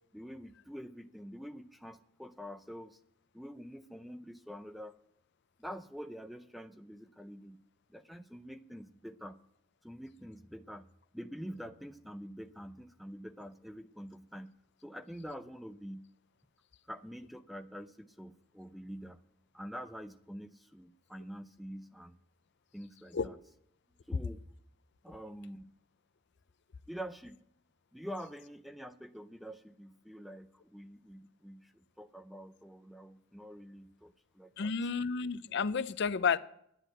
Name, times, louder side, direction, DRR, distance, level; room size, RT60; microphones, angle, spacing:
voice 1, 0.1-3.0 3.3-5.0 5.6-7.6 7.9-9.4 9.8-10.8 11.1-14.5 14.8-16.1 16.9-19.2 19.5-22.2 22.7-23.4 24.1-24.4 25.0-25.7 26.9-27.4 27.9-34.7, equal, ahead, 0.5 m, -46 dB
voice 2, 34.6-36.4, left 5 dB, 50° left, 0.5 m, -31 dB
11.0 x 10.0 x 7.7 m
head